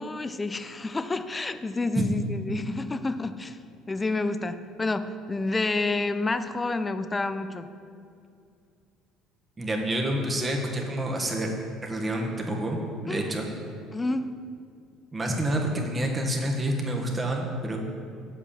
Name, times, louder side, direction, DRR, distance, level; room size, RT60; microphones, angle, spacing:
voice 1, 0.0-3.6 3.9-7.7 13.1-13.3 13.9-14.3, left 3 dB, 20° left, 11 dB, 0.4 m, -29 dB
voice 2, 9.6-11.6 11.8-13.5 15.1-17.8, right 1 dB, 20° right, 0 dB, 1.4 m, -28 dB
7.9 x 4.9 x 7.2 m, 2.4 s
cardioid pair, 105°, 0 cm